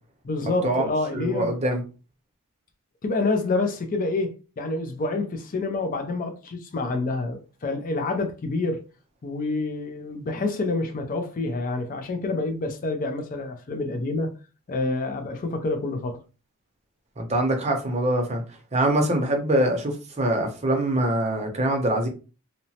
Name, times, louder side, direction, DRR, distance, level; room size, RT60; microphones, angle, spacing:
voice 1, 0.2-1.5 3.0-8.8 9.2-14.3 14.7-16.2, left 3 dB, 40° left, 0.4 m, -27 dB
voice 2, 1.1-1.8 17.2-18.4 18.7-22.1, right 1 dB, 30° right, 0.6 m, -24 dB
2.8 x 2.0 x 2.7 m
head